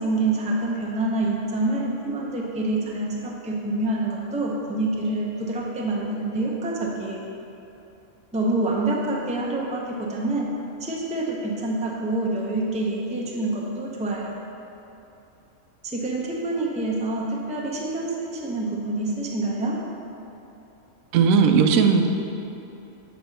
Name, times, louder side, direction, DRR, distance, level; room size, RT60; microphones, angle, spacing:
voice 1, 0.0-7.3 8.3-10.5 10.8-14.4 15.8-19.8, right 2 dB, 10° right, -2 dB, 0.5 m, -27 dB
voice 2, 21.1-22.1, right 5 dB, 75° right, 5 dB, 1.0 m, -17 dB
8.1 x 3.8 x 6.3 m, 2.9 s
omnidirectional pair, 1.5 m